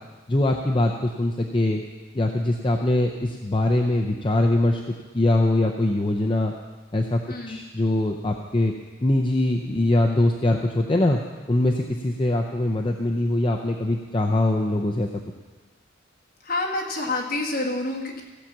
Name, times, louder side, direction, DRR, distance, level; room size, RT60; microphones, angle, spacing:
voice 1, 0.3-1.8 2.1-4.8 5.1-6.5 6.9-7.2 7.5-8.7 9.0-11.2 11.5-15.1, left 1 dB, 25° left, 1 dB, 0.5 m, -22 dB
voice 2, 7.3-7.6 16.4-18.2, left 2 dB, 45° left, -1 dB, 1.8 m, -28 dB
15.5 x 5.8 x 7.4 m, 1.3 s
head